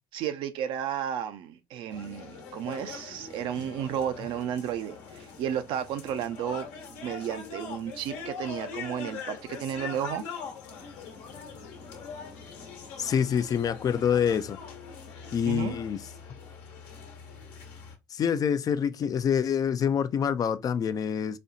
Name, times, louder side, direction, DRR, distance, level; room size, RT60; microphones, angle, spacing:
voice 1, 0.1-10.2 15.5-15.8, right 9 dB, 65° right, 0.6 m, -33 dB
sound 1, 1.9-18.0, left 5 dB, 80° left, 1.1 m, -42 dB
voice 2, 13.0-14.6 15.3-16.0 18.1-21.4, left 8 dB, 40° left, 0.4 m, -26 dB
4.2 x 2.3 x 2.6 m
hypercardioid pair, 75°, 9 cm